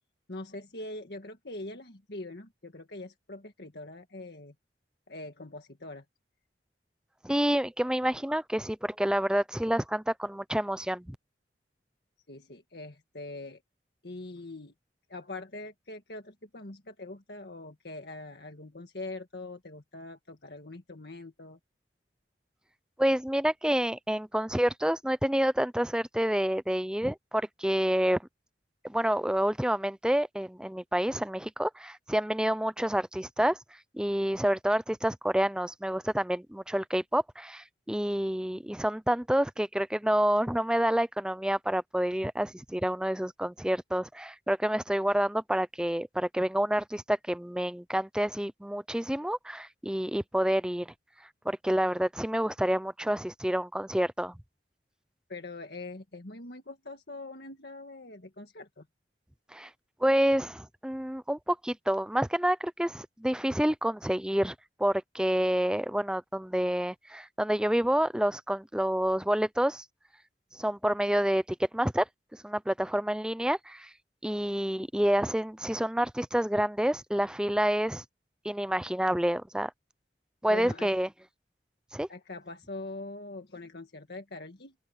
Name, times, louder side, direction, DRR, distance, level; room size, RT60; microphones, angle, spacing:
voice 1, 0.3-4.5 5.1-6.0 12.3-13.6 14.0-14.7 15.1-21.6 55.3-58.9 80.5-80.9 82.1-84.7, left 2 dB, 65° left, 1.8 m, -43 dB
voice 2, 7.2-11.2 23.0-28.2 28.8-33.6 33.9-50.9 51.4-54.4 59.5-59.7 60.0-64.5 64.8-69.8 70.5-72.1 72.3-73.9 74.2-78.0 78.4-79.7 80.4-81.1 81.9-82.1, equal, 5° right, 0.5 m, -28 dB
open air
head